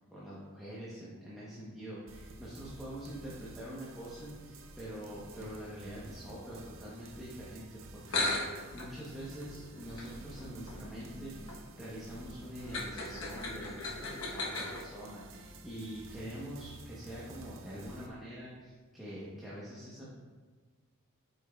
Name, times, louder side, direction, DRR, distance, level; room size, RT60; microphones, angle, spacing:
voice 1, 0.1-20.1, equal, ahead, -9 dB, 0.9 m, -45 dB
sound 1, 2.1-18.1, right 2 dB, 60° right, 0.6 m, -51 dB
sound 2, 7.8-7.9 8.1-14.8, left 2 dB, 70° left, 1.0 m, -38 dB
8.2 x 5.3 x 2.3 m, 1.5 s
head